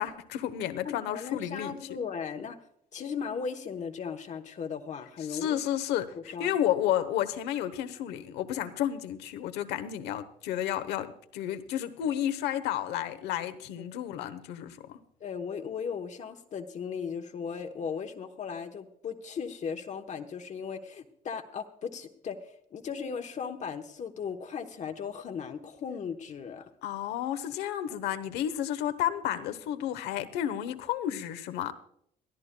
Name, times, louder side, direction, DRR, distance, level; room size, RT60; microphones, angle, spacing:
voice 1, 0.0-1.8 5.3-15.0 26.8-31.7, left 11 dB, 90° left, 1.0 m, -31 dB
voice 2, 0.8-2.6 2.9-5.6 6.1-6.6 11.4-11.5 15.2-26.6 27.9-28.0, left 6 dB, 45° left, 1.0 m, -37 dB
22.0 x 13.5 x 2.3 m
cardioid pair, 110°, 17 cm